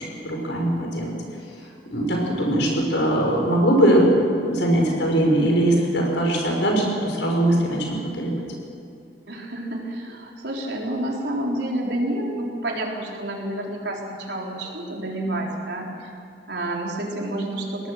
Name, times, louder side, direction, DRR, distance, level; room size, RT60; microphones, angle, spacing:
voice 1, 0.2-1.1 1.9-8.3, right 1 dB, 80° left, 0 dB, 5.9 m, -21 dB
voice 2, 9.3-16.1 16.5-17.9, right 1 dB, 70° right, -1 dB, 4.0 m, -29 dB
23.0 x 18.0 x 6.6 m, 2.7 s
head